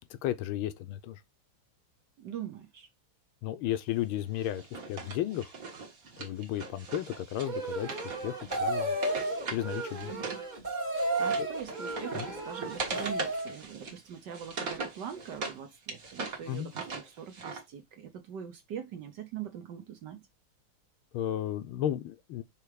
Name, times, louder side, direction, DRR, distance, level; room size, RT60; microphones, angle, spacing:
voice 1, 0.2-1.2 3.4-5.5 6.2-9.0 9.5-10.1 11.4-11.5 12.1-12.3 16.5-16.7 21.1-22.4, left 12 dB, 80° left, 1.5 m, -34 dB
voice 2, 2.2-2.9 10.0-10.4 11.2-20.2, right 8 dB, 60° right, 1.3 m, -42 dB
Wood, 4.4-10.5 10.7-15.6 15.9-17.6, right 4 dB, 45° right, 1.7 m, -40 dB
sound 1, 7.4-13.6, right 2 dB, 25° right, 1.3 m, -33 dB
5.8 x 3.4 x 4.7 m
omnidirectional pair, 2.4 m